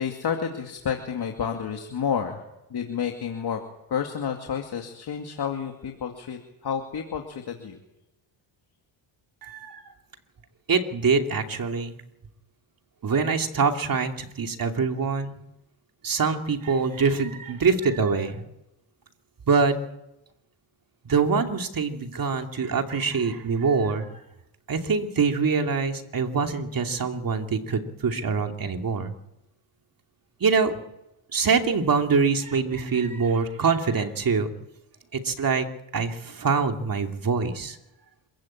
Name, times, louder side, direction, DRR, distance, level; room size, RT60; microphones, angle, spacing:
voice 1, 0.0-2.4 2.7-3.6 3.9-7.8, left 7 dB, 50° left, 3 dB, 2.4 m, -30 dB
voice 2, 9.4-9.8 10.7-12.0 13.0-15.4 16.0-18.4 19.5-19.7 21.0-24.1 24.7-29.1 30.4-30.7 31.3-34.5 35.1-35.7 35.9-37.8, right 5 dB, 40° right, 4 dB, 2.7 m, -24 dB
27.0 x 15.5 x 8.7 m, 0.91 s
cardioid pair, 105°, 50 cm